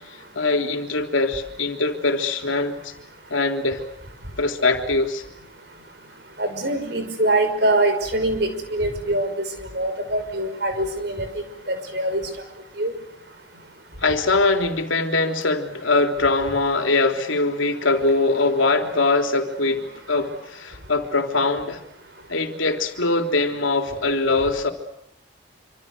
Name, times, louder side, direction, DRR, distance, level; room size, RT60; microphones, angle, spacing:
voice 1, 0.4-2.9 3.3-3.8 4.4-5.2 14.0-21.8 22.3-24.7, left 3 dB, 85° left, 5 dB, 3.5 m, -22 dB
voice 2, 6.4-9.5 9.7-11.3 11.7-12.2 12.8-12.9, right 1 dB, 55° right, 8 dB, 5.6 m, -23 dB
27.0 x 26.5 x 6.8 m, 0.78 s
head